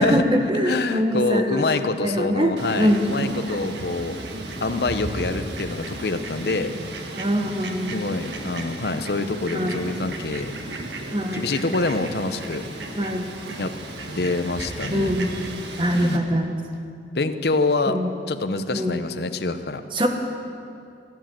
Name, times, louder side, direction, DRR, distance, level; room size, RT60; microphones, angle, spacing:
voice 1, 0.0-1.7 2.0-3.3 7.2-8.0 9.5-9.8 11.1-11.5 13.0-13.3 14.9-15.5 15.8-16.6 17.9-18.1 18.7-19.0 19.9-20.1, equal, 30° right, 4 dB, 1.3 m, -23 dB
voice 2, 0.5-4.2 4.6-6.7 7.9-10.6 11.3-12.6 13.6-13.7 14.1-15.1 15.9-16.3 17.1-18.0 18.3-19.8, left 3 dB, 65° left, 9 dB, 0.8 m, -26 dB
Fowl, 2.6-16.2, right 2 dB, 80° right, 1.5 m, -34 dB
16.0 x 12.0 x 7.7 m, 2.5 s
head